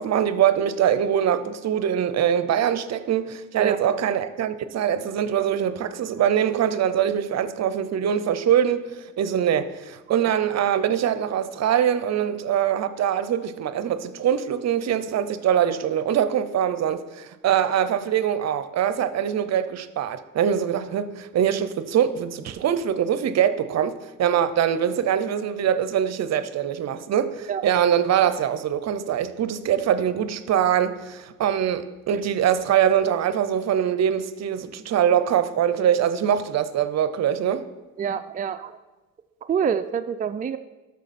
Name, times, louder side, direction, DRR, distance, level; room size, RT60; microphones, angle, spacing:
voice 1, 0.0-37.6, right 9 dB, 60° right, 13 dB, 0.7 m, -23 dB
voice 2, 38.0-38.8 39.5-40.6, right 7 dB, 30° right, 8 dB, 0.4 m, -26 dB
12.0 x 6.6 x 4.2 m, 1.1 s
cardioid pair, 90°, 30 cm